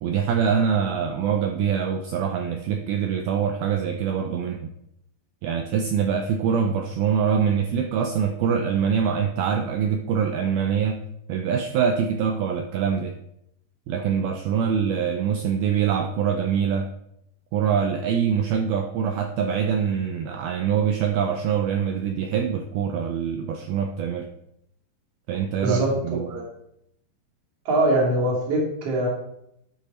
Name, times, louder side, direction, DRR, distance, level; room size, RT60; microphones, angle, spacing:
voice 1, 0.0-4.7 5.4-11.0 11.3-13.2 13.9-16.9 17.5-24.3 25.3-26.3, right 7 dB, 80° right, 5 dB, 2.2 m, -24 dB
voice 2, 25.6-26.4 27.6-29.1, right 1 dB, 40° right, -3 dB, 3.3 m, -23 dB
12.0 x 8.4 x 4.3 m, 0.78 s
omnidirectional pair, 5.1 m